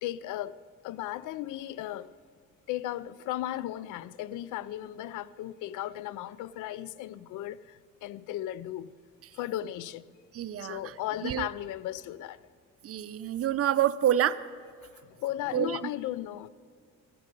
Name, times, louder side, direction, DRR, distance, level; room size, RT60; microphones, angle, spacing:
voice 1, 0.0-2.1 2.7-8.9 9.3-10.1 10.6-12.4 14.8-16.5, left 13 dB, 85° left, 0.5 m, -36 dB
voice 2, 10.3-10.9 11.2-11.5 12.8-14.4 15.5-15.8, right 10 dB, 50° right, 0.6 m, -27 dB
13.5 x 10.5 x 5.3 m
cardioid pair, 90°, 30 cm